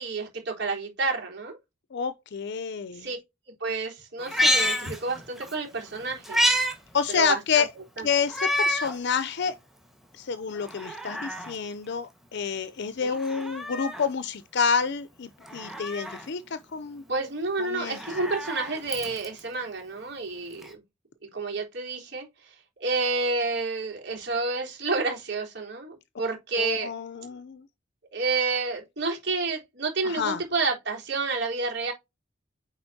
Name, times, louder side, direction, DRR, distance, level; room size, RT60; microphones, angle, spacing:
voice 1, 0.0-1.6 2.9-3.2 3.6-6.5 7.1-7.6 8.0-8.1 13.0-13.2 17.1-20.8 21.3-22.3 22.8-26.9 28.1-31.9, right 3 dB, 60° right, 3.6 m, -29 dB
voice 2, 1.9-3.1 6.9-7.7 8.0-9.5 10.2-17.0 17.6-18.0 26.6-27.6 30.0-30.4, left 6 dB, 60° left, 0.5 m, -28 dB
Meow, 4.2-5.5 5.9-6.8 7.1-7.2 8.3-9.0 9.5-9.6 10.6-11.6 13.1-14.1 15.4-16.3 17.7-19.4 20.6-20.7, equal, ahead, 1.5 m, -28 dB
8.8 x 4.2 x 2.7 m
head